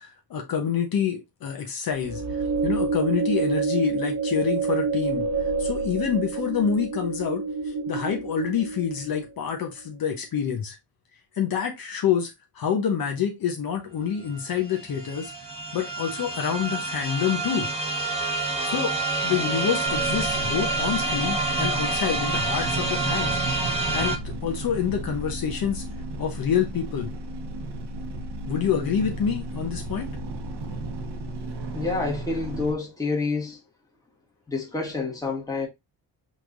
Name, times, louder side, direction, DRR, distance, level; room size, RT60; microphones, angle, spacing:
voice 1, 0.0-10.8 11.3-15.3 15.7-17.7 18.6-19.0 19.2-23.4 23.7-25.8 26.2-27.1 28.5-30.1, left 7 dB, 55° left, 1.0 m, -27 dB
sound 1, 2.0-9.3, right 4 dB, 40° right, 1.1 m, -28 dB
sound 2, 13.9-14.0 14.2-24.2, right 3 dB, 15° right, 0.8 m, -27 dB
sound 3, 19.8-32.7, right 2 dB, 90° right, 1.1 m, -34 dB
voice 2, 31.7-33.6 34.5-35.7, left 3 dB, 10° left, 1.6 m, -28 dB
5.6 x 3.2 x 2.6 m
wide cardioid pair, 160°, 41 cm